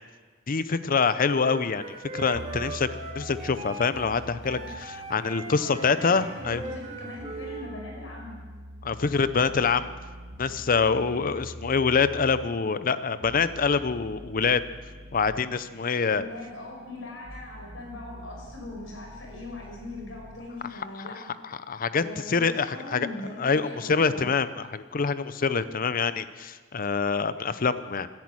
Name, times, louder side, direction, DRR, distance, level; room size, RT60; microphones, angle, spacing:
voice 1, 0.5-2.9 3.1-6.6 8.8-9.9 10.4-14.6 15.1-16.2 21.2-23.1 23.4-28.1, left 5 dB, 45° left, 14 dB, 0.6 m, -25 dB
Wind instrument woodwind instrument, 1.2-7.7, right 3 dB, 35° right, 1.8 m, -39 dB
sound 1, 2.3-20.3, right 1 dB, 80° right, 1.8 m, -45 dB
voice 2, 5.7-8.4 16.1-21.3 21.9-24.2, left 2 dB, 80° left, 0 dB, 5.0 m, -41 dB
17.0 x 10.5 x 6.2 m, 1.4 s
head